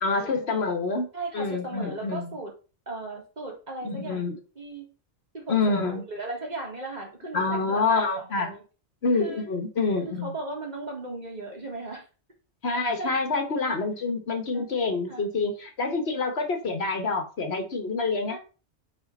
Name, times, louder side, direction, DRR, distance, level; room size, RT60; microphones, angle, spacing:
voice 1, 0.0-1.1 1.3-2.3 3.8-4.4 5.5-6.0 7.3-8.5 9.0-10.3 12.6-18.4, left 3 dB, 65° left, 6 dB, 1.4 m, -27 dB
voice 2, 1.1-2.5 2.9-4.2 4.6-4.9 5.3-5.6 5.9-8.6 9.1-9.5 10.2-12.0 12.7-13.2 14.5-15.2 16.8-17.0 18.3-18.4, right 2 dB, 40° right, 0 dB, 2.0 m, -37 dB
4.9 x 4.3 x 5.3 m, 0.34 s
omnidirectional pair, 1.2 m